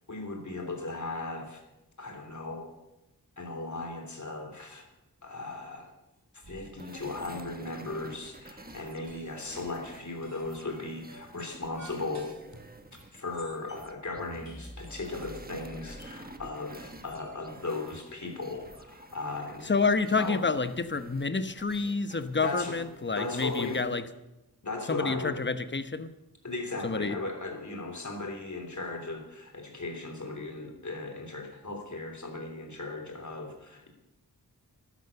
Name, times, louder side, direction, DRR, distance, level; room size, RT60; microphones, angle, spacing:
voice 1, 0.0-1.6 2.0-2.7 3.4-4.9 5.2-5.9 6.3-12.3 13.1-19.7 20.2-20.4 22.4-22.8 23.1-23.8 24.6-25.4 26.4-33.9, left 3 dB, 50° left, 3 dB, 3.2 m, -37 dB
sound 1, 6.4-6.7 6.9-7.5 7.9-8.3 8.7-13.9 14.5-18.0, right 3 dB, 50° right, 3.1 m, -54 dB
sound 2, 6.8-24.0, right 2 dB, 25° right, 1.2 m, -50 dB
sound 3, 14.2-16.0, equal, 5° left, 0.9 m, -47 dB
voice 2, 19.7-24.0 24.9-26.1 26.8-27.2, left 4 dB, 30° left, 11 dB, 0.9 m, -28 dB
12.5 x 12.0 x 6.9 m, 0.96 s
wide cardioid pair, 80°, 37 cm